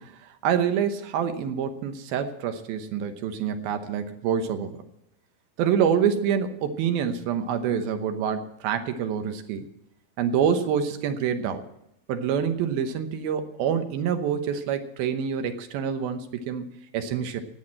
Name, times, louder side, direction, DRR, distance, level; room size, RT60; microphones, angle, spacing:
voice 1, 0.0-4.8 5.6-9.7 10.2-11.6 12.1-17.4, right 8 dB, 80° right, 8 dB, 2.9 m, -26 dB
15.0 x 9.3 x 7.6 m, 0.82 s
omnidirectional pair, 4.3 m